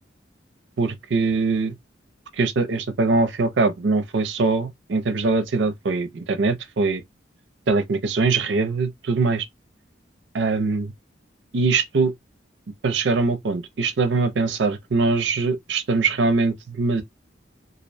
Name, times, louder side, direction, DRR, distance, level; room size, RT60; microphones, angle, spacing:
voice 1, 0.8-1.8 2.3-7.0 7.7-9.5 10.3-10.9 11.5-12.1 12.8-17.0, right 3 dB, 70° right, 0.5 m, -22 dB
2.4 x 2.1 x 2.5 m
head